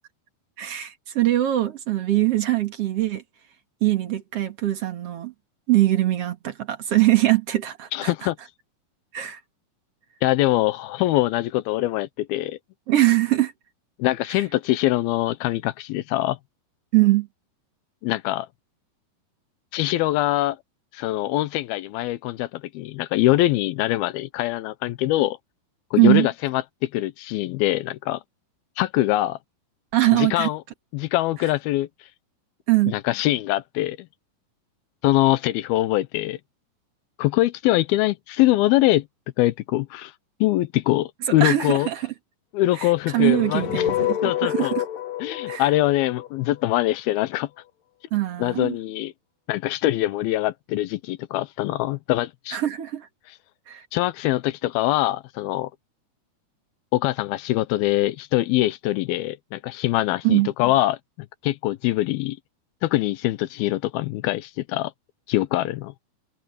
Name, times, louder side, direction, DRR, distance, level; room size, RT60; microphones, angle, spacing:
voice 1, 0.6-3.2 3.8-5.3 5.7-8.1 9.1-9.4 12.9-13.5 16.9-17.3 26.0-26.3 29.9-30.5 32.7-33.0 41.4-42.1 42.8-44.8 45.5-45.7 48.1-48.8 52.5-53.1 53.7-53.9 60.2-60.5, right 16 dB, 50° right, 2.3 m, -22 dB
voice 2, 7.9-8.4 10.2-12.6 14.0-16.4 18.0-18.5 19.7-20.6 20.9-25.4 25.9-28.2 28.8-29.4 30.1-30.6 30.9-31.9 32.9-34.1 35.0-36.4 37.2-39.1 39.4-40.1 40.4-41.9 42.5-43.9 44.2-44.7 45.2-47.5 48.4-49.1 49.5-52.6 53.9-55.7 56.9-61.0 61.4-62.4 62.8-64.9 65.3-65.9, left 16 dB, 90° left, 2.6 m, -23 dB
sound 1, 42.9-47.0, left 11 dB, 65° left, 2.9 m, -28 dB
omnidirectional pair, 4.3 m